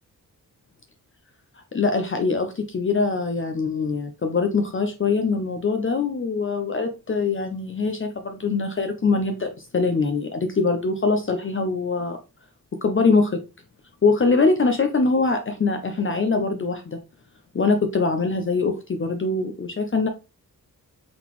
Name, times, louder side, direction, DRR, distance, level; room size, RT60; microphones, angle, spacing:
voice 1, 1.7-12.2 12.8-13.4 14.0-17.0 17.5-20.1, left 4 dB, 35° left, 0.6 m, -23 dB
3.9 x 3.8 x 3.0 m
wide cardioid pair, 130°, 35 cm